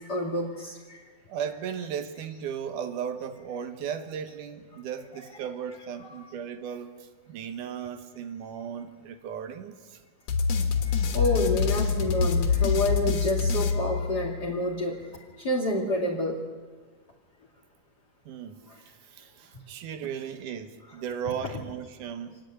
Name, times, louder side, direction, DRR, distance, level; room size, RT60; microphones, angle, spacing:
voice 1, 0.1-0.7 11.1-15.0 15.4-16.4, left 1 dB, 35° left, -2 dB, 2.9 m, -28 dB
voice 2, 1.3-10.0 18.3-22.4, right 8 dB, 80° right, 8 dB, 2.6 m, -36 dB
sound 1, 10.3-14.6, left 6 dB, 85° left, 3.1 m, -26 dB
26.5 x 10.5 x 9.4 m, 1.4 s
omnidirectional pair, 3.6 m